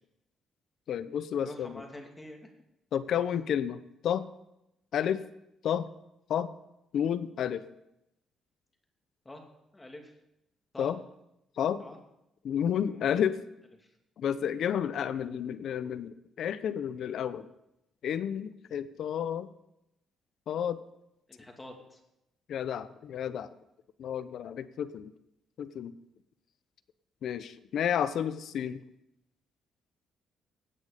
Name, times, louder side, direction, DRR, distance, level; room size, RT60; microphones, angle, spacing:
voice 1, 0.9-1.8 2.9-4.3 4.9-5.2 5.6-5.9 6.3-6.5 6.9-7.6 10.8-11.0 11.6-11.8 12.4-13.4 14.2-17.5 18.0-19.5 20.5-20.8 22.5-23.5 24.0-25.1 25.6-26.0 27.2-28.8, left 9 dB, 70° left, 14 dB, 0.8 m, -31 dB
voice 2, 1.4-2.5 9.2-9.4 9.7-10.1 10.7-10.9 11.8-12.0 12.9-13.1 21.3-22.0, left 1 dB, 20° left, 2 dB, 2.7 m, -46 dB
18.0 x 8.2 x 5.1 m, 0.88 s
cardioid pair, 90°, 0 cm